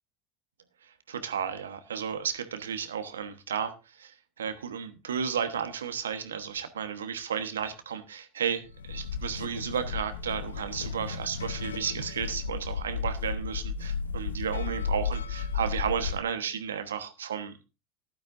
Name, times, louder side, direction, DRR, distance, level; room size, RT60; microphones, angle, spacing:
voice 1, 1.1-17.7, right 7 dB, 85° right, 1.1 m, -33 dB
sound 1, 8.7-16.2, left 5 dB, 85° left, 0.6 m, -34 dB
15.0 x 11.5 x 2.6 m
hypercardioid pair, 85°, 0 cm